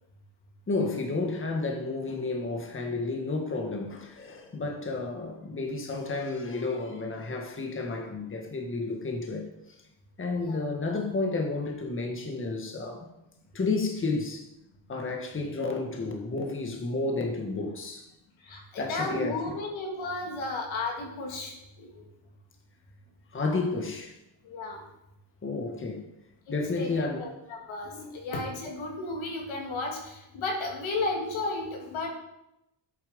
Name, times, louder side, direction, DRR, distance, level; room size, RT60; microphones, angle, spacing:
voice 1, 0.7-9.8 10.2-13.1 13.5-14.5 14.9-18.1 18.8-19.5 23.3-24.2 25.4-26.0 26.5-27.2 27.8-28.2, left 3 dB, 25° left, 2 dB, 1.6 m, -31 dB
voice 2, 18.4-22.1 24.4-24.8 26.8-32.1, left 2 dB, 85° left, 1 dB, 2.8 m, -34 dB
11.0 x 8.8 x 5.2 m, 0.89 s
cardioid pair, 120°, 46 cm